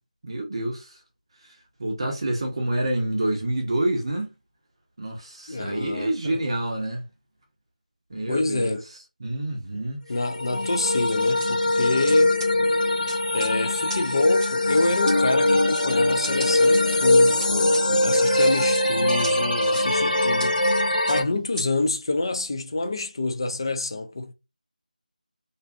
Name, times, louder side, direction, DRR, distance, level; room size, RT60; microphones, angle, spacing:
voice 1, 0.2-1.0 1.4-4.3 5.0-7.0 8.1-10.1, right 1 dB, 35° right, 0.6 m, -28 dB
voice 2, 5.5-6.4 8.3-8.8 10.1-12.4 13.3-20.6 21.1-24.3, left 2 dB, 30° left, 0.3 m, -27 dB
sound 1, 10.2-21.2, left 2 dB, 70° left, 0.9 m, -21 dB
sound 2, 11.1-11.5 12.1-12.2 12.4-12.5 13.1-13.5 13.9-14.0 14.4-14.5 15.1-15.2 15.7-15.9 16.2-16.8 17.4-17.8 18.4-18.8 19.2-19.3 19.7-19.8 20.4-20.5 21.1-21.2 21.6-21.7, right 1 dB, 10° right, 0.9 m, -34 dB
2.5 x 2.3 x 2.4 m
figure-of-eight pair, 170°, 5 cm